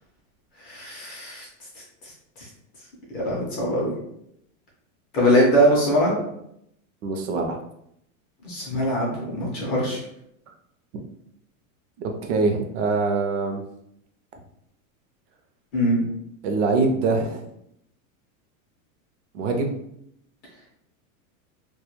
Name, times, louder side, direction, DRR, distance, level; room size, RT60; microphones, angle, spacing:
voice 1, 0.6-1.5 3.1-3.9 5.1-6.2 8.4-10.0 15.7-16.0, equal, 25° left, -4 dB, 0.4 m, -22 dB
voice 2, 7.0-7.6 10.9-11.0 12.2-13.6 16.4-17.4 19.3-19.8, right 3 dB, 60° right, 3 dB, 0.5 m, -23 dB
2.2 x 2.1 x 2.9 m, 0.75 s
supercardioid pair, 165°, 41 cm